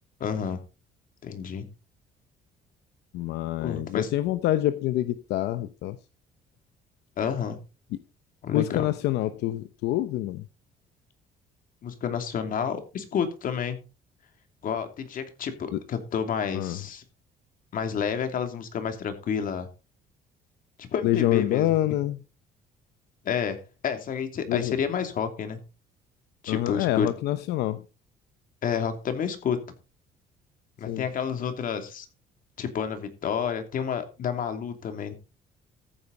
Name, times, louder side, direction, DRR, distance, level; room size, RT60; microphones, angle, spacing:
voice 1, 0.2-0.6 1.2-1.7 3.6-4.1 7.2-7.6 8.4-8.9 11.8-13.8 14.6-17.0 17.7-19.7 20.8-21.8 23.2-25.6 26.4-27.1 28.6-29.6 30.8-32.1 32.6-35.2, left 7 dB, 55° left, 2.8 m, -30 dB
voice 2, 3.1-6.0 7.9-8.0 8.5-10.5 15.7-15.8 16.5-16.8 21.0-22.2 24.5-24.7 26.5-27.8 30.9-31.0, left 14 dB, 80° left, 0.8 m, -26 dB
14.0 x 8.8 x 4.0 m
cardioid pair, 110°, 17 cm